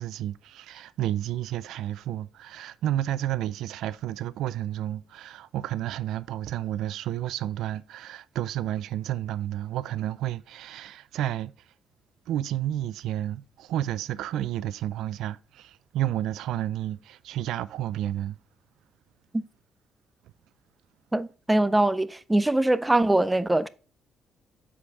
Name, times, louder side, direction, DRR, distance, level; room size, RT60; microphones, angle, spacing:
voice 1, 0.0-11.5 12.3-18.4, right 12 dB, 85° right, 0.3 m, -31 dB
voice 2, 21.1-23.7, right 1 dB, 10° right, 0.4 m, -22 dB
7.6 x 4.9 x 3.3 m
cardioid pair, 90°, 0 cm